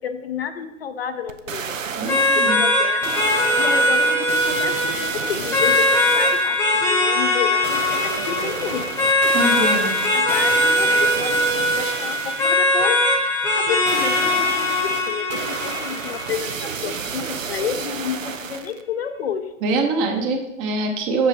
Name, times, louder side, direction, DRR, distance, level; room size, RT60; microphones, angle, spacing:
voice 1, 0.0-1.7 2.5-3.1 3.6-8.9 9.6-13.0 13.5-19.5, left 7 dB, 50° left, 8 dB, 0.7 m, -30 dB
sound 1, 1.3-2.6 3.0-6.6 7.6-12.6 13.9-18.8 19.3-19.4, right 6 dB, 75° right, 0.8 m, -31 dB
voice 2, 2.0-2.6 9.3-9.9 19.6-21.3, right 3 dB, 25° right, 4 dB, 1.0 m, -23 dB
sound 2, 2.1-17.1, left 1 dB, 5° left, 1.1 m, -20 dB
8.0 x 6.6 x 3.3 m, 0.91 s
figure-of-eight pair, 120°, 39 cm